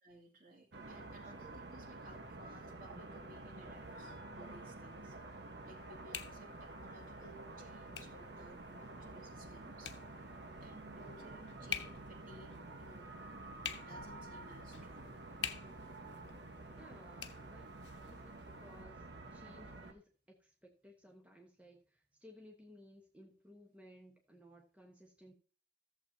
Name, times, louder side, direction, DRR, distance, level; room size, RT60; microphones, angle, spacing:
voice 1, 0.0-10.3 10.6-13.1 13.7-15.1, right 1 dB, 50° right, -1 dB, 2.7 m, -58 dB
sound 1, 0.7-19.9, right 2 dB, 75° right, 1.2 m, -50 dB
sound 2, 3.7-18.8, left 8 dB, 85° left, 1.0 m, -50 dB
voice 2, 16.7-25.3, equal, 10° right, 0 dB, 1.1 m, -59 dB
15.0 x 7.4 x 2.7 m, 0.38 s
head